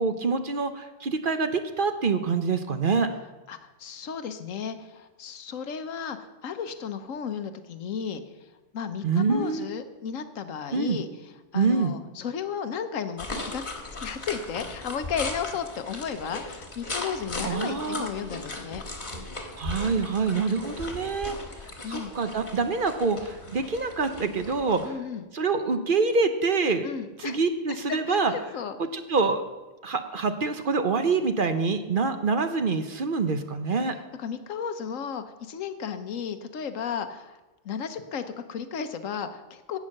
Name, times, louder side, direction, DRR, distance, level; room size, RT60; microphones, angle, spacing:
voice 1, 0.0-3.1 9.0-9.7 10.7-11.0 11.5-11.9 17.4-18.1 19.6-21.3 21.9-25.0 25.3-26.9 27.2-28.3 28.9-29.4 29.8-33.9, right 4 dB, 50° right, 8 dB, 0.9 m, -26 dB
voice 2, 3.5-8.5 8.7-11.1 11.5-13.6 14.0-18.8 21.8-22.1 24.8-25.3 26.8-27.4 27.9-28.8 33.9-37.4 37.6-39.8, left 7 dB, 85° left, 9 dB, 1.3 m, -34 dB
sound 1, 13.2-24.9, left 2 dB, 35° left, 1.8 m, -37 dB
16.5 x 6.3 x 6.5 m, 1.1 s
omnidirectional pair, 1.3 m